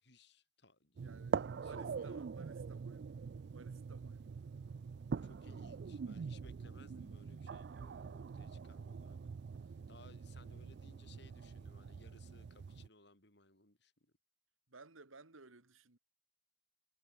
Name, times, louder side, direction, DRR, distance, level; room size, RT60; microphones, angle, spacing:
voice 1, 0.0-1.1 1.6-2.3 5.2-9.3 9.6-14.1, left 2 dB, 55° left, 6.7 m, -63 dB
sound 1, 1.0-12.9, right 5 dB, 55° right, 0.4 m, -44 dB
voice 2, 1.0-3.3 3.5-4.4 14.7-16.0, right 3 dB, 90° right, 2.2 m, -58 dB
head